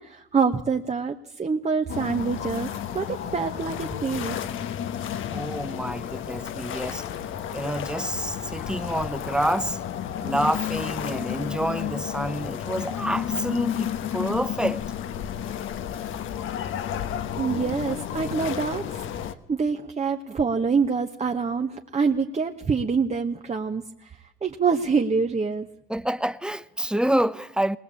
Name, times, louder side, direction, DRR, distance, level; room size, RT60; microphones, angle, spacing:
voice 1, 0.0-4.4 17.4-19.0 19.5-24.1 24.4-25.7, right 5 dB, 35° right, 1.3 m, -26 dB
sound 1, 1.9-19.3, left 10 dB, 80° left, 1.3 m, -32 dB
voice 2, 5.3-7.1 7.5-9.8 10.2-14.8 25.9-27.8, right 1 dB, 5° right, 0.8 m, -28 dB
21.0 x 19.5 x 8.5 m
cardioid pair, 90°, 20 cm